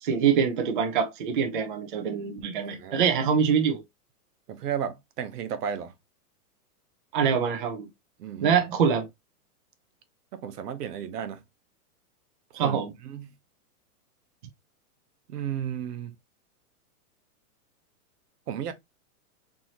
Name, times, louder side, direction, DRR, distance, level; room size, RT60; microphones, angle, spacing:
voice 1, 0.0-3.8 7.1-7.9 8.4-9.1 12.5-12.9, right 7 dB, 35° right, 0.6 m, -24 dB
voice 2, 2.6-3.1 4.5-5.9 8.2-8.6 10.3-11.4 12.5-13.3 15.3-16.1 18.5-18.7, right 8 dB, 85° right, 1.0 m, -34 dB
4.6 x 2.8 x 2.8 m
supercardioid pair, 180°, 46 cm